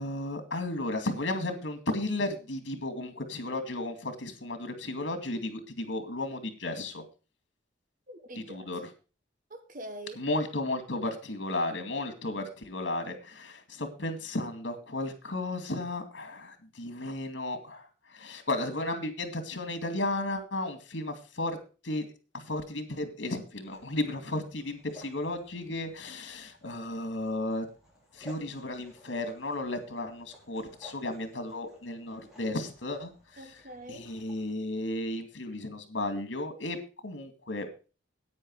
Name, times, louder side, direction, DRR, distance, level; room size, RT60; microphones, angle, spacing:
voice 1, 0.0-7.0 8.5-8.8 10.2-21.6 21.8-22.1 22.3-27.7 28.1-33.1 33.9-37.7, left 2 dB, 70° left, 2.3 m, -34 dB
voice 2, 8.1-8.7 9.5-10.2 33.4-34.1, right 1 dB, 45° right, 1.5 m, -44 dB
sound 1, 23.5-34.5, left 1 dB, 5° right, 4.9 m, -56 dB
9.9 x 9.1 x 4.7 m
head